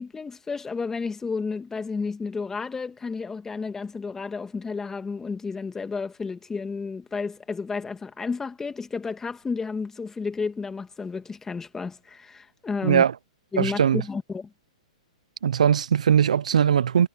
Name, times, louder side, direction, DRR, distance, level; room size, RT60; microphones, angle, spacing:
voice 1, 0.0-13.0 13.5-14.5, left 4 dB, 10° left, 2.3 m, -32 dB
voice 2, 13.6-14.0 15.4-17.1, right 8 dB, 75° right, 1.0 m, -20 dB
hypercardioid pair, 120°, 4 cm